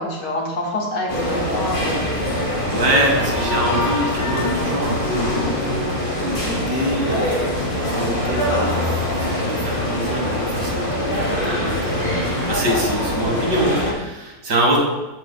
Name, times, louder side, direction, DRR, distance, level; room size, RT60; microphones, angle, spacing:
voice 1, 0.0-2.1, left 1 dB, 85° left, -2 dB, 2.2 m, -26 dB
sound 1, 1.1-13.9, left 1 dB, 30° left, 1.8 m, -23 dB
voice 2, 2.7-9.0 9.3-14.8, right 1 dB, 75° right, -1 dB, 2.3 m, -25 dB
13.0 x 5.8 x 2.2 m, 1.1 s
omnidirectional pair, 1.8 m